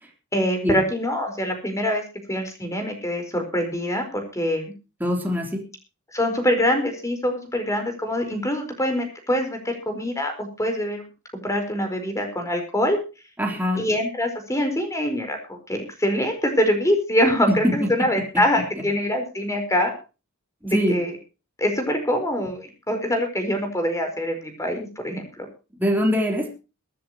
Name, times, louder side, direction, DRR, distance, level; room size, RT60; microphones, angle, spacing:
voice 1, 0.3-2.0 2.3-4.6 6.1-11.0 11.4-13.0 13.8-19.9 20.6-21.1 21.6-25.5, equal, 15° left, 5 dB, 4.6 m, -24 dB
voice 2, 5.0-5.6 13.4-13.8 17.6-17.9 20.7-21.0 25.8-26.5, equal, 10° right, 1 dB, 3.6 m, -22 dB
24.0 x 10.5 x 3.0 m, 0.31 s
head